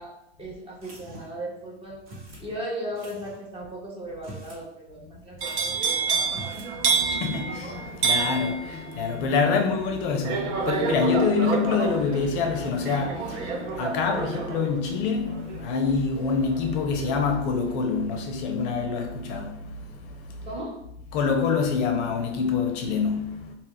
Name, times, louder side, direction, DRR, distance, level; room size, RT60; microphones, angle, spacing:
voice 1, 0.0-2.0 2.4-6.8 20.4-20.8, right 1 dB, 15° right, 0.6 m, -37 dB
sound 1, 0.8-1.5 2.0-2.5 2.9-3.4 4.1-4.6 4.9-5.0 5.4-5.9 6.2-6.7, right 2 dB, 35° right, 1.0 m, -44 dB
sound 2, 5.4-17.4 17.7-18.1, right 5 dB, 70° right, 0.6 m, -29 dB
voice 2, 6.8-20.5 21.1-23.5, left 5 dB, 45° left, 0.5 m, -26 dB
2.1 x 2.1 x 3.7 m
hypercardioid pair, 115°, 36 cm